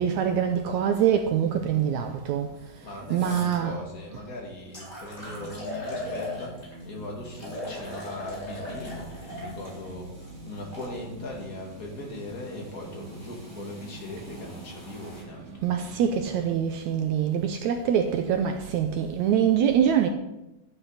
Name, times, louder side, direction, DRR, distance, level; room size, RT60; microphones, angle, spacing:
voice 1, 0.0-2.5 3.1-3.8 15.6-20.1, right 8 dB, 80° right, 1.8 m, -24 dB
sound 1, 2.6-2.7 3.1-3.6 4.2-4.3 4.7-6.8 7.3-11.0 11.8-15.2, left 1 dB, 15° left, 3.9 m, -40 dB
voice 2, 2.8-15.7, left 1 dB, 30° left, 2.2 m, -39 dB
sound 2, 5.2-16.6, right 1 dB, 65° right, 3.1 m, -45 dB
11.5 x 9.8 x 4.1 m
omnidirectional pair, 3.8 m